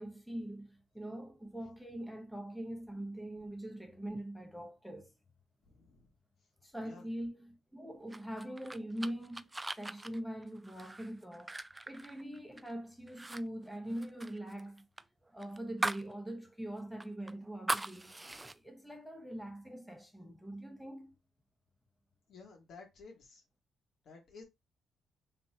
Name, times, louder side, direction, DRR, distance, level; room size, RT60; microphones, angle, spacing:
voice 1, 0.0-5.1 6.6-11.6 11.9-14.9 15.3-18.1 18.5-21.1, right 1 dB, 5° left, 1.0 m, -43 dB
voice 2, 5.7-6.1 6.8-7.1 22.3-23.4 24.0-24.4, left 4 dB, 65° left, 2.2 m, -53 dB
sound 1, 8.1-12.7 13.1-13.4 13.7-16.1 16.5-16.6 17.0-18.6, right 2 dB, 15° right, 0.3 m, -40 dB
4.3 x 3.4 x 2.8 m
cardioid pair, 90°, 0 cm